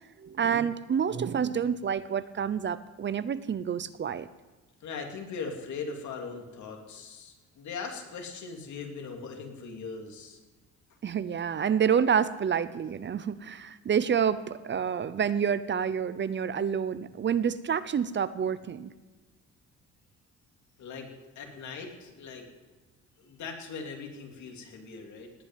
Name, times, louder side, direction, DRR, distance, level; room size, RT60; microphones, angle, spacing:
voice 1, 0.2-4.3 11.0-18.9, right 7 dB, 40° right, 15 dB, 0.7 m, -28 dB
voice 2, 4.8-10.4 20.8-22.5 23.2-25.3, left 5 dB, 75° left, 3 dB, 2.9 m, -40 dB
18.5 x 6.3 x 9.3 m, 1.3 s
cardioid pair, 105°, 29 cm